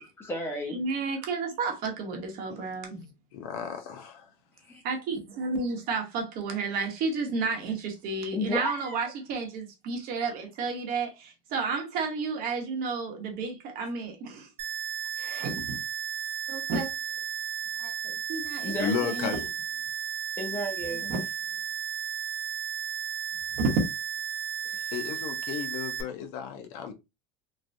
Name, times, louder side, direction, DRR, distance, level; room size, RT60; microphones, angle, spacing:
voice 1, 0.0-0.8 4.6-4.8 8.3-9.0 18.6-19.0 20.4-21.1 24.6-24.9, left 1 dB, 10° left, 0.7 m, -34 dB
voice 2, 0.7-3.1 4.8-14.5 15.2-15.8 16.5-16.9 17.8-18.7 19.0-19.4 21.1-21.2 23.6-23.8, right 4 dB, 45° right, 0.9 m, -31 dB
voice 3, 3.3-4.3 18.7-19.5 24.9-26.9, left 7 dB, 60° left, 0.7 m, -33 dB
sound 1, 14.6-26.0, right 8 dB, 30° right, 0.6 m, -34 dB
3.2 x 2.1 x 2.5 m
supercardioid pair, 155°, 21 cm